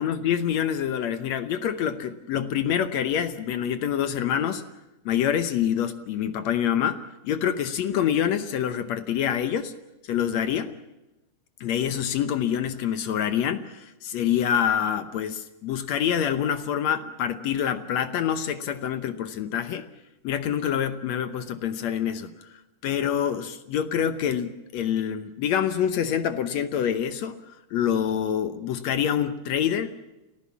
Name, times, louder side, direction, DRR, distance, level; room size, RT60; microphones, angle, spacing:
voice 1, 0.0-4.6 5.1-9.7 10.0-10.7 11.6-19.9 20.2-22.5 22.8-30.0, left 9 dB, 70° left, 11 dB, 1.9 m, -26 dB
29.5 x 14.0 x 7.2 m, 0.97 s
omnidirectional pair, 3.7 m